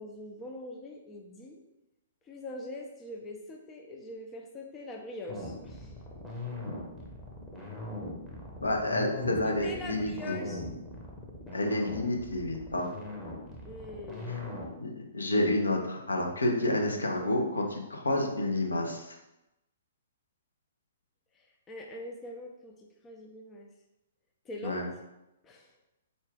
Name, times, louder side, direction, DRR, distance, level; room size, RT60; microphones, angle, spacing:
voice 1, 0.0-1.6 2.3-6.0 9.4-10.6 13.6-14.5 21.3-23.7 24.5-24.8 25.4-25.7, left 2 dB, 20° left, 1 dB, 0.4 m, -43 dB
sound 1, 5.3-14.8, left 2 dB, ahead, 0.8 m, -40 dB
voice 2, 8.6-10.5 11.5-12.9 14.8-19.1 24.6-24.9, left 1 dB, 75° left, 1 dB, 0.6 m, -29 dB
3.9 x 2.4 x 3.5 m, 0.94 s
figure-of-eight pair, 120°, 0 cm